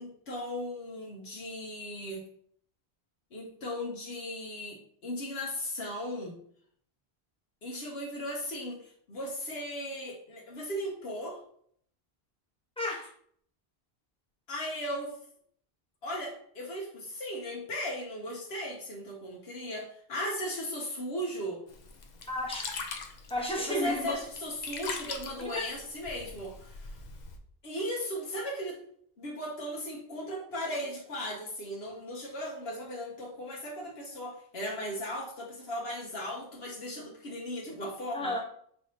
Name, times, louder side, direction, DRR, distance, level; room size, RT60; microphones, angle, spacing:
voice 1, 0.0-2.2 3.3-6.4 7.6-11.4 14.5-15.1 16.0-21.6 23.6-27.0 27.6-28.8 29.2-38.3, equal, 75° left, -2 dB, 1.1 m, -37 dB
voice 2, 12.8-13.1 22.3-22.7 23.3-24.1 25.4-25.7 38.1-38.4, left 1 dB, 5° left, -3 dB, 1.0 m, -32 dB
Sink (filling or washing), 21.7-27.4, left 4 dB, 50° left, 0.6 m, -42 dB
4.7 x 3.3 x 2.8 m, 0.62 s
omnidirectional pair, 1.1 m